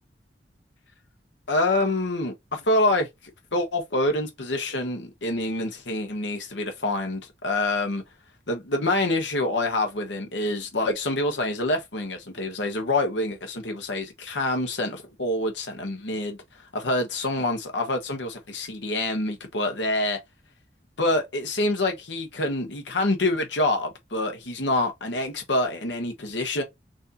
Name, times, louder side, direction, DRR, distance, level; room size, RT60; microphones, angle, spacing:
voice 1, 1.5-3.1 3.5-8.0 8.5-16.4 16.7-20.2 21.0-26.6, left 2 dB, 90° left, 1.3 m, -26 dB
6.1 x 2.7 x 2.9 m
head